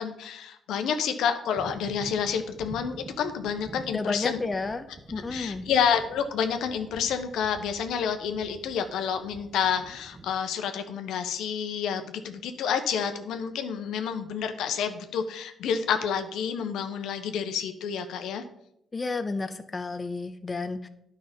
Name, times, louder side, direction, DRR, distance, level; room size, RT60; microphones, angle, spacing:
voice 1, 0.0-4.4 5.3-18.4, left 7 dB, 85° left, 7 dB, 1.0 m, -29 dB
sound 1, 1.6-10.4, right 2 dB, 30° right, 1.0 m, -46 dB
voice 2, 3.9-5.7 18.9-20.9, left 3 dB, 25° left, 9 dB, 0.7 m, -31 dB
9.9 x 5.6 x 5.2 m, 0.76 s
cardioid pair, 90°, 0 cm